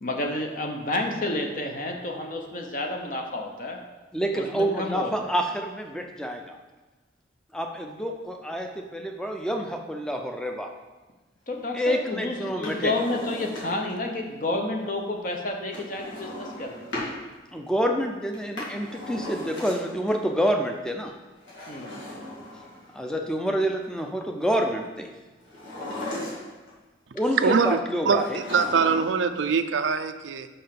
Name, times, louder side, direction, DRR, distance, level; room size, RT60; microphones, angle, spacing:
voice 1, 0.0-3.8 4.3-5.3 11.5-16.8 21.7-21.9, left 2 dB, 45° left, 2 dB, 0.8 m, -30 dB
voice 2, 4.1-6.6 7.5-10.7 11.7-12.9 17.5-21.1 22.9-25.1 27.1-28.4, equal, 5° left, 3 dB, 0.5 m, -28 dB
Drawer open or close, 12.5-14.0 15.7-17.2 18.3-20.1 21.4-23.0 25.5-26.7 28.1-29.3 29.5-29.6, left 1 dB, 85° left, 2.2 m, -37 dB
voice 3, 27.4-27.8 28.1-30.5, right 5 dB, 85° right, 10 dB, 0.5 m, -23 dB
5.6 x 5.4 x 5.8 m, 1.2 s
head